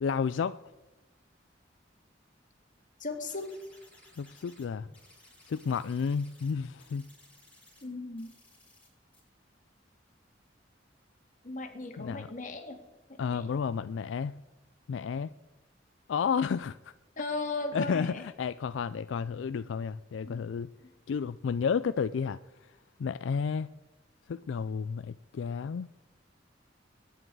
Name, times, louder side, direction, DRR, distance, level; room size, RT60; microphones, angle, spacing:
voice 1, 0.0-0.6 4.2-4.9 5.5-7.1 12.0-12.3 13.2-14.4 14.9-15.3 16.1-16.9 17.7-20.7 21.1-22.7 23.0-23.7 24.3-25.9, left 6 dB, 75° left, 13 dB, 0.4 m, -31 dB
voice 2, 3.0-3.5 7.8-8.3 11.4-12.8 13.2-13.5 17.2-18.2 20.2-20.4, left 3 dB, 45° left, 4 dB, 2.1 m, -36 dB
sound 1, 3.3-4.6 4.9-6.5 6.8-7.8 8.2-8.9 9.1-9.2, left 2 dB, 10° left, 6.9 m, -59 dB
22.0 x 10.0 x 4.7 m, 1.1 s
head